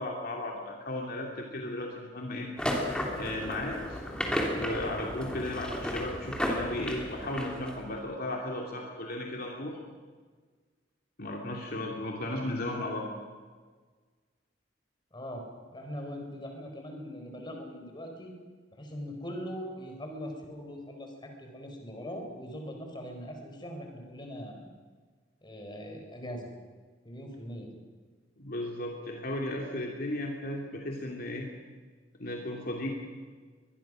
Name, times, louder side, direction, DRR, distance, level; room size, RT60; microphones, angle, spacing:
voice 1, 0.0-2.5 3.2-4.0 4.5-9.8 11.2-13.1 28.4-31.5 32.2-32.9, left 1 dB, 55° left, 0 dB, 2.7 m, -35 dB
sound 1, 2.6-8.0, equal, 5° left, 3.1 m, -33 dB
voice 2, 15.1-15.4 15.7-18.3 18.7-24.7 25.4-26.5 27.0-27.7, equal, 25° left, 3 dB, 4.5 m, -41 dB
23.5 x 21.0 x 6.3 m, 1.5 s
head